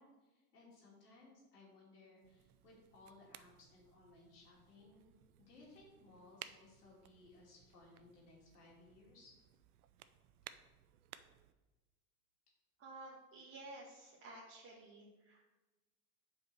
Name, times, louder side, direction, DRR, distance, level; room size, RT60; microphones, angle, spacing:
voice 1, 0.0-5.0 5.4-9.3, left 2 dB, 85° left, -3 dB, 2.5 m, -62 dB
sound 1, 2.2-11.5, right 12 dB, 75° right, 0.6 m, -59 dB
voice 2, 12.8-15.4, right 2 dB, 30° right, -5 dB, 1.5 m, -53 dB
5.5 x 4.9 x 5.8 m, 1.1 s
hypercardioid pair, 95°, 45 cm